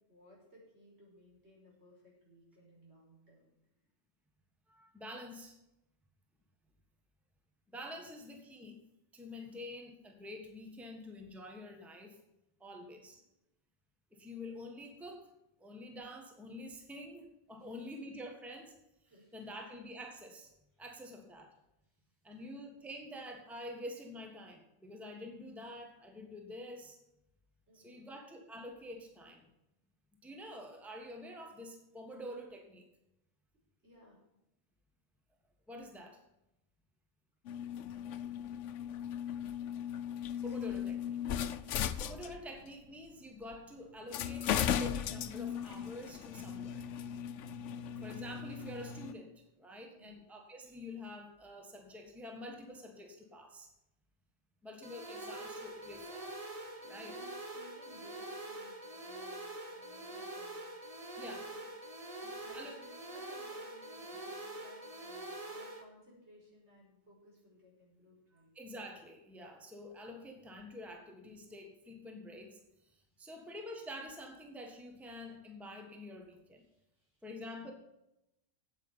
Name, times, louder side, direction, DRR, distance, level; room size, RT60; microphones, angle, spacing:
voice 1, 0.1-3.5 8.0-8.2 12.6-13.2 17.6-18.0 19.1-19.7 20.7-20.9 21.8-22.5 27.7-28.1 33.8-34.2 49.8-50.2 56.8-60.7 61.2-61.6 61.9-68.5 71.2-71.3 72.1-72.2 73.1-73.3 76.6-77.7, equal, 65° right, -4 dB, 5.7 m, -61 dB
voice 2, 4.7-5.6 7.7-8.8 9.1-12.2 12.6-13.2 14.1-15.3 15.6-18.8 19.3-20.5 20.8-21.5 22.2-27.0 27.7-29.5 30.2-32.8 35.7-36.2 40.4-41.2 42.0-46.9 48.0-53.7 54.6-56.4 56.9-57.1 61.2-61.5 62.5-62.7 68.5-72.6 72.9-76.6 77.2-77.7, left 1 dB, ahead, 2 dB, 1.5 m, -47 dB
sound 1, 37.5-42.7 43.5-43.6 44.1-49.1, left 9 dB, 85° left, 1.0 m, -37 dB
sound 2, 54.8-65.8, right 1 dB, 30° right, 1.5 m, -45 dB
9.6 x 8.4 x 8.0 m, 0.89 s
omnidirectional pair, 1.2 m